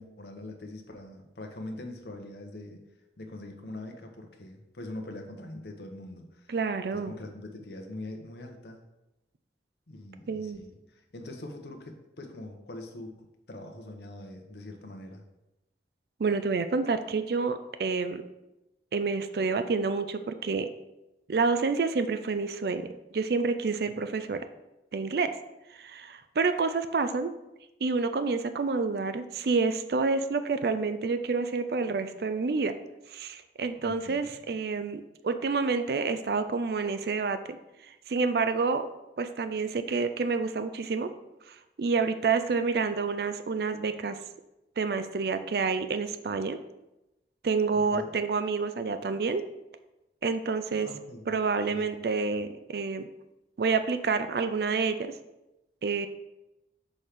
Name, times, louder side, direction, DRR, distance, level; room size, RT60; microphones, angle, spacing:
voice 1, 0.0-2.8 3.2-6.5 6.9-8.8 9.9-15.2 23.9-24.0 33.8-34.3 47.7-48.1 50.8-51.3 51.7-51.9, left 1 dB, 65° left, 3 dB, 0.9 m, -43 dB
voice 2, 6.5-7.1 10.3-10.6 16.2-18.2 18.9-20.7 21.3-24.4 24.9-25.3 25.8-27.3 27.8-32.8 33.1-37.6 38.1-38.9 39.2-41.1 41.5-44.2 44.8-46.6 47.4-49.5 50.2-50.9 51.3-53.1 53.6-55.1 55.8-56.1, right 4 dB, 60° right, 10 dB, 0.4 m, -28 dB
6.3 x 3.4 x 5.7 m, 0.94 s
head